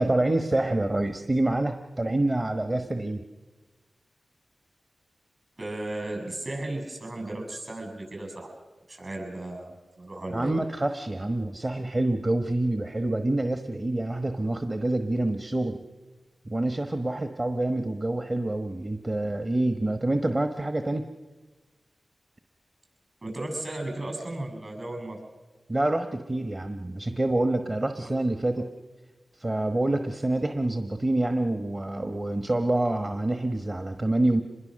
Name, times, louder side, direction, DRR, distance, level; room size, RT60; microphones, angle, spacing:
voice 1, 0.0-3.2 10.3-15.8 16.4-21.1 25.7-28.7 29.4-34.4, right 2 dB, 35° right, 7 dB, 1.2 m, -27 dB
voice 2, 5.6-8.5 8.9-10.6 23.2-25.2, right 1 dB, 55° right, 3 dB, 7.2 m, -35 dB
25.5 x 21.5 x 6.5 m, 1.3 s
cardioid pair, 45°, 0 cm